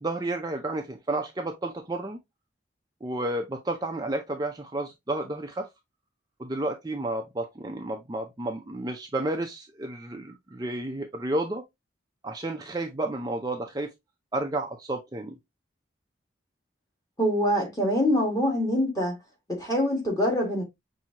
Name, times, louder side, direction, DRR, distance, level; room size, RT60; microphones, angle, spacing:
voice 1, 0.0-2.2 3.0-5.7 6.4-11.6 12.2-13.9 14.3-15.4, right 2 dB, 20° right, 0.5 m, -31 dB
voice 2, 17.2-19.1 19.5-20.6, equal, 20° left, 1.7 m, -24 dB
5.8 x 2.7 x 2.7 m
head